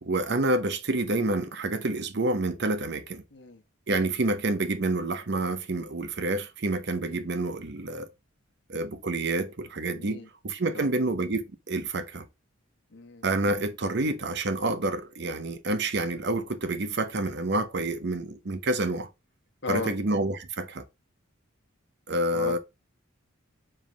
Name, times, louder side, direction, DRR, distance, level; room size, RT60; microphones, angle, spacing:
voice 1, 0.0-3.2 3.9-8.1 8.7-12.3 13.2-19.1 19.7-20.8 22.1-22.6, right 2 dB, 55° right, 0.8 m, -28 dB
voice 2, 3.3-3.6 7.1-7.3 10.0-10.3 10.7-10.9 12.9-13.2 19.6-19.9 22.3-22.6, left 3 dB, 60° left, 1.2 m, -35 dB
5.2 x 3.7 x 5.0 m
head